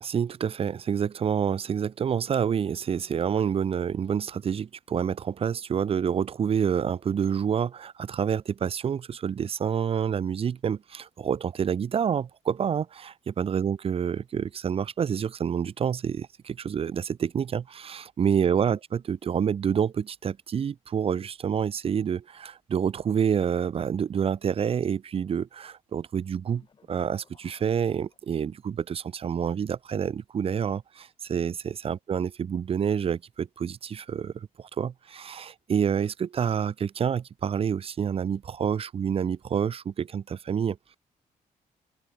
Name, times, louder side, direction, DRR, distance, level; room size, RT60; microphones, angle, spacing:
voice 1, 0.0-26.6 26.9-41.0, right 7 dB, 40° right, 1.0 m, -28 dB
sound 1, 26.4-28.8, left 5 dB, 35° left, 4.6 m, -61 dB
open air
cardioid pair, 130°, 14 cm